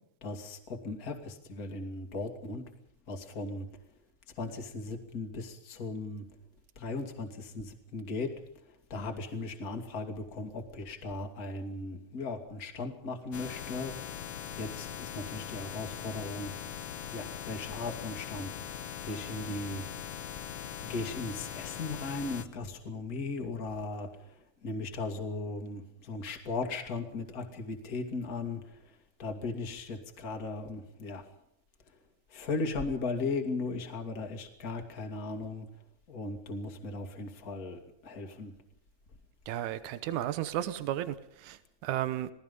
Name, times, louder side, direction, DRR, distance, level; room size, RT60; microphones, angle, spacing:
voice 1, 0.2-2.6 3.1-3.6 4.4-6.2 6.8-8.3 8.9-14.0 14.6-16.5 17.1-18.5 19.0-19.9 20.8-24.1 24.6-28.6 29.2-31.3 32.3-35.7 36.1-38.5, left 3 dB, 30° left, 5 dB, 2.6 m, -37 dB
sound 1, 13.3-22.4, left 9 dB, 60° left, 1.8 m, -41 dB
voice 2, 39.5-42.3, right 12 dB, 85° right, 12 dB, 2.4 m, -34 dB
28.0 x 18.5 x 5.4 m, 0.77 s
omnidirectional pair, 3.4 m